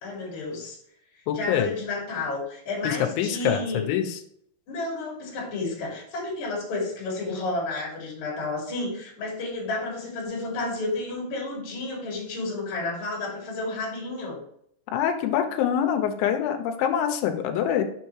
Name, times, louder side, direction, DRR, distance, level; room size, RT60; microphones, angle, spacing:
voice 1, 0.0-0.8 1.3-3.8 4.7-14.4, left 2 dB, 45° left, -3 dB, 3.2 m, -31 dB
voice 2, 1.3-1.7 2.8-4.2 14.9-17.8, left 9 dB, 85° left, 6 dB, 3.0 m, -25 dB
7.0 x 5.6 x 3.1 m, 0.70 s
omnidirectional pair, 5.5 m